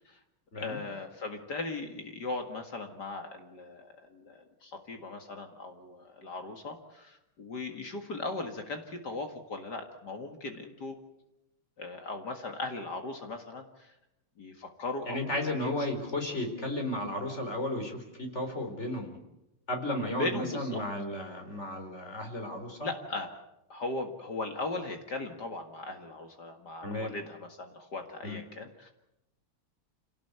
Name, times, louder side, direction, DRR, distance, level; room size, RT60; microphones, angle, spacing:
voice 1, 0.5-11.0 11.8-13.9 14.4-15.8 20.2-20.8 22.8-23.3 23.7-28.9, left 2 dB, 50° left, 5 dB, 2.4 m, -38 dB
voice 2, 15.1-19.2 19.7-22.9 26.8-27.1 28.2-28.4, left 1 dB, 30° left, 5 dB, 4.5 m, -34 dB
27.0 x 18.0 x 8.1 m, 0.89 s
omnidirectional pair, 2.3 m